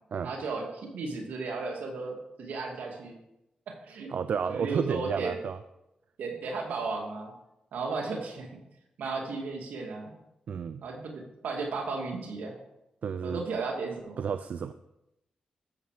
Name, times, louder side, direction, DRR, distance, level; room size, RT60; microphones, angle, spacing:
voice 1, 0.2-3.2 3.7-4.1 4.5-5.4 6.2-7.3 7.7-8.5 9.0-10.1 10.8-12.5 13.2-14.3, right 4 dB, 90° right, 2 dB, 2.2 m, -35 dB
voice 2, 4.1-5.6 10.5-10.8 13.0-13.4 14.2-14.7, right 6 dB, 65° right, 11 dB, 0.4 m, -31 dB
13.5 x 7.2 x 4.9 m, 0.88 s
cardioid pair, 65°, 3 cm